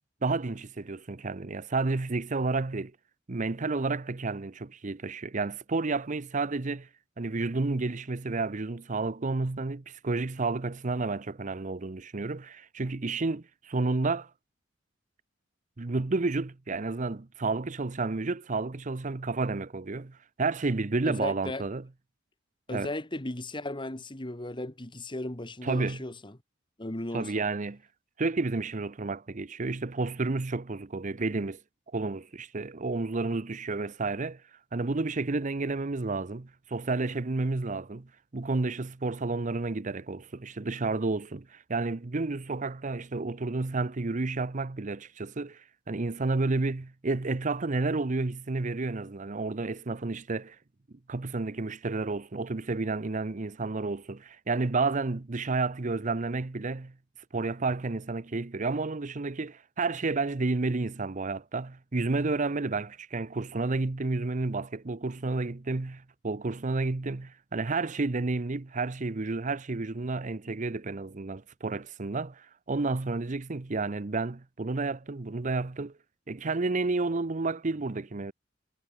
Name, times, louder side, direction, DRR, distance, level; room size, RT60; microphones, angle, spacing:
voice 1, 0.2-2.9 3.3-6.9 7.2-14.3 15.8-21.8 22.7-22.9 25.6-26.0 27.1-27.8 28.2-31.6 31.9-34.4 34.7-50.6 51.1-56.9 57.3-75.9 76.3-78.3, right 3 dB, 40° right, 0.7 m, -31 dB
voice 2, 21.0-21.6 22.7-26.4 26.8-27.4, left 1 dB, 25° left, 1.8 m, -36 dB
head